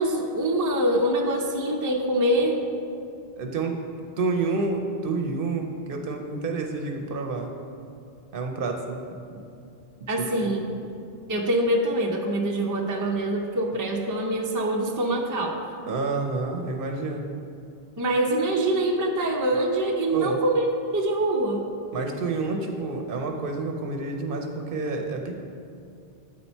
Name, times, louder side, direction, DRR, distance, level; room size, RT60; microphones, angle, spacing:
voice 1, 0.0-2.6 10.1-10.6 11.3-15.6 18.0-20.7 20.9-21.6, right 1 dB, 25° right, 0 dB, 0.5 m, -24 dB
voice 2, 3.4-3.8 4.2-7.5 8.3-9.0 9.3-9.4 10.2-10.5 15.9-17.2 20.1-20.4 21.9-25.4, right 3 dB, 65° right, 3 dB, 0.8 m, -29 dB
8.9 x 4.1 x 4.4 m, 2.5 s
omnidirectional pair, 1.0 m